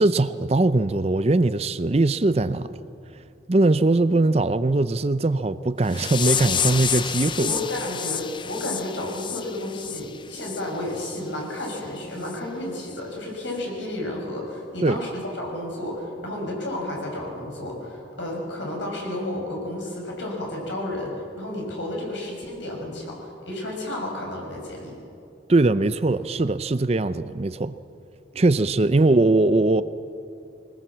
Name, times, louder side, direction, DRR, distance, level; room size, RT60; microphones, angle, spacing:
voice 1, 0.0-2.7 3.5-7.5 14.8-15.0 25.5-27.7 28.3-29.8, right 2 dB, 35° right, 13 dB, 0.5 m, -21 dB
sound 1, 5.9-10.6 11.0-11.2 11.6-11.8 12.3-12.4 12.9-13.0, left 8 dB, 25° left, 0.5 m, -29 dB
voice 2, 7.3-23.2 23.4-25.0, left 1 dB, 80° left, -1 dB, 6.8 m, -32 dB
22.0 x 20.0 x 7.4 m, 2.6 s
head